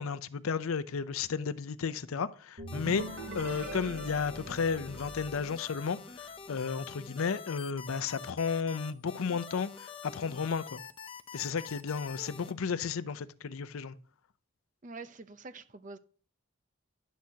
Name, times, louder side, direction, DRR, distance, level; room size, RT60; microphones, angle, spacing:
voice 1, 0.0-3.1 3.3-10.8 11.3-13.9, left 5 dB, 85° left, 0.5 m, -33 dB
sound 1, 2.6-6.3, right 2 dB, 55° right, 3.9 m, -43 dB
sound 2, 2.7-12.5, left 6 dB, 25° left, 0.6 m, -46 dB
voice 2, 14.8-16.0, right 3 dB, 35° right, 0.6 m, -45 dB
11.0 x 8.3 x 2.8 m
head